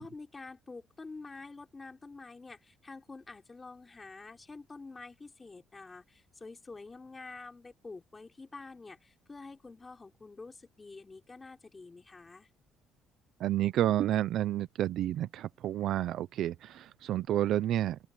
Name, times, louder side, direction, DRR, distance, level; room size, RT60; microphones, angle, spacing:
voice 1, 0.0-12.5, left 3 dB, 20° left, 3.9 m, -48 dB
voice 2, 13.4-18.0, right 12 dB, 60° right, 0.8 m, -30 dB
open air
cardioid pair, 145°, 0 cm